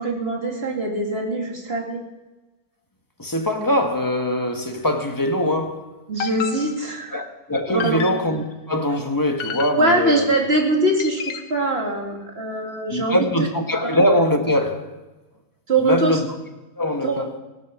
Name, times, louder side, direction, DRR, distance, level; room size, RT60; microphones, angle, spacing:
voice 1, 0.0-2.0 6.1-7.1 7.7-8.0 9.8-11.2 11.5-13.2 13.8-14.0 15.7-16.2 17.0-17.2, right 2 dB, 45° right, 2.7 m, -22 dB
voice 2, 3.2-5.9 7.1-10.3 12.9-14.9 15.8-16.3 16.8-17.3, left 1 dB, 15° left, 1.3 m, -22 dB
sound 1, 6.2-7.2 7.8-8.5 9.4-10.2 11.0-11.7, left 8 dB, 80° left, 1.3 m, -32 dB
16.5 x 12.0 x 6.1 m
omnidirectional pair, 1.5 m